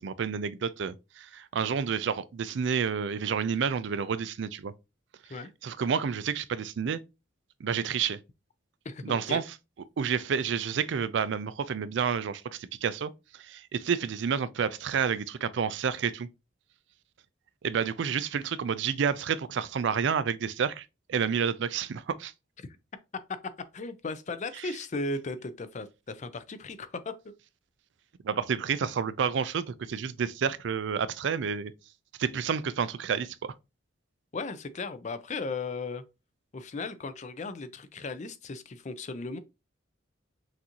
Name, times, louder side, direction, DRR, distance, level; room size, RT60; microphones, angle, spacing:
voice 1, 0.0-4.7 5.6-7.0 7.6-8.2 9.0-9.4 10.0-16.3 17.6-22.3 24.6-24.7 28.2-31.7 32.2-33.5, right 6 dB, 65° right, 0.4 m, -30 dB
voice 2, 8.8-9.4 23.7-27.1 34.3-36.0 36.5-39.4, left 3 dB, 40° left, 0.5 m, -36 dB
5.9 x 2.6 x 2.9 m
head